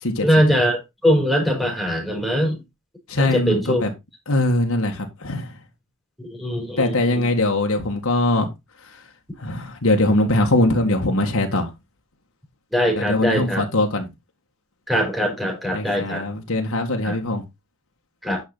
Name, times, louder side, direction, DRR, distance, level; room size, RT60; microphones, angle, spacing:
voice 1, 0.2-2.6 3.2-3.8 6.2-7.3 12.7-13.6 14.9-16.3 17.0-17.2 18.2-18.4, equal, ahead, 4.4 m, -22 dB
voice 2, 3.1-3.9 4.3-5.6 6.8-8.5 8.9-9.0 9.4-11.7 12.9-14.1 15.7-17.4, left 1 dB, 80° left, 1.9 m, -21 dB
10.0 x 5.9 x 4.0 m
head